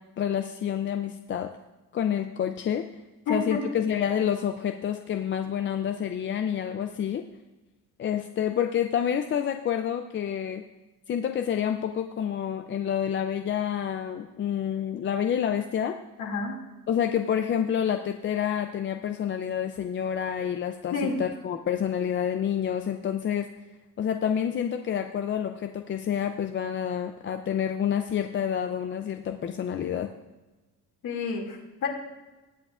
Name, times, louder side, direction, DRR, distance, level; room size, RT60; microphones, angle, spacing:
voice 1, 0.2-1.5 1.9-2.9 3.3-7.2 8.0-10.6 11.1-15.9 16.9-23.5 24.0-30.1, left 9 dB, 35° left, 6 dB, 0.4 m, -28 dB
voice 2, 3.3-3.6 16.2-16.5 20.9-21.2 31.0-31.9, left 4 dB, 55° left, -1 dB, 2.4 m, -29 dB
20.5 x 7.7 x 2.4 m, 1.1 s
cardioid pair, 150°, 37 cm